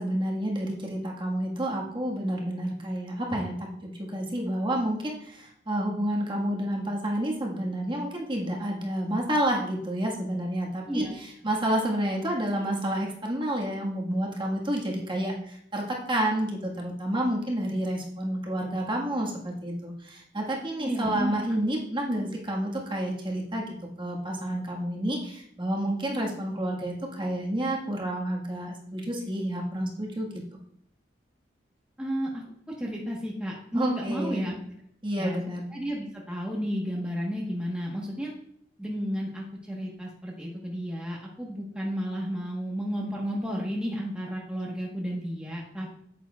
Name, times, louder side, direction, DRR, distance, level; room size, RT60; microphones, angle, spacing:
voice 1, 0.0-23.7 24.0-30.3 33.7-34.4 35.0-35.6, right 1 dB, 30° right, -2 dB, 1.6 m, -29 dB
voice 2, 20.8-21.4 32.0-32.4 32.8-34.6 35.2-35.4 35.7-38.3 38.8-45.9, equal, 5° right, -4 dB, 1.2 m, -32 dB
9.1 x 8.8 x 2.4 m, 0.69 s
head